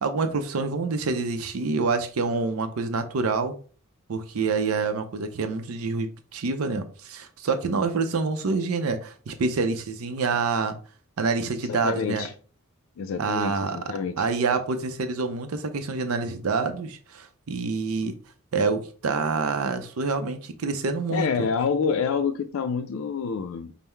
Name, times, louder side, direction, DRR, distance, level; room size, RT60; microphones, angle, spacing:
voice 1, 0.0-3.5 4.1-10.8 11.2-12.3 13.2-18.1 18.5-21.3, right 4 dB, 85° right, 0.5 m, -27 dB
voice 2, 11.6-12.3 13.0-14.3 21.1-23.7, left 6 dB, 75° left, 0.4 m, -27 dB
5.4 x 2.0 x 4.4 m
head